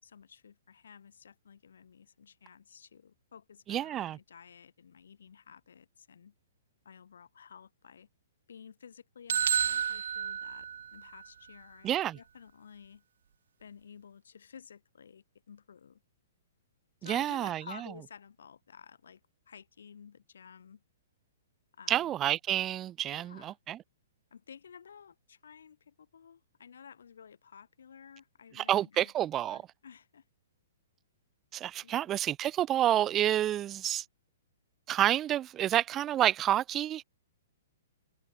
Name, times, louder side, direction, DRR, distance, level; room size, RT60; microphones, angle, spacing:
voice 1, 0.0-6.3 6.8-8.1 8.5-13.0 13.6-16.0 17.0-19.2 19.5-20.8 21.7-22.2 23.1-23.6 24.3-29.1 29.4-30.2 31.8-32.1, left 7 dB, 80° left, 5.7 m, -53 dB
voice 2, 3.7-4.2 11.8-12.2 17.0-17.6 21.9-23.8 28.5-29.6 31.5-34.0 34.9-37.0, right 12 dB, 20° right, 0.7 m, -29 dB
sound 1, 9.3-11.2, right 8 dB, 75° right, 1.0 m, -31 dB
hypercardioid pair, 145°, 0 cm